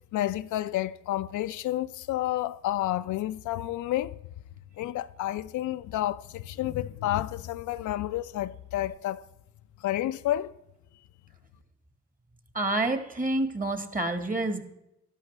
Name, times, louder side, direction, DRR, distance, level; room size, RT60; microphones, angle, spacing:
voice 1, 0.1-4.2 4.8-9.3 9.8-10.5, left 14 dB, 75° left, 0.5 m, -30 dB
voice 2, 12.5-14.6, right 2 dB, 25° right, 1.6 m, -28 dB
13.0 x 11.5 x 3.3 m
cardioid pair, 90°, 30 cm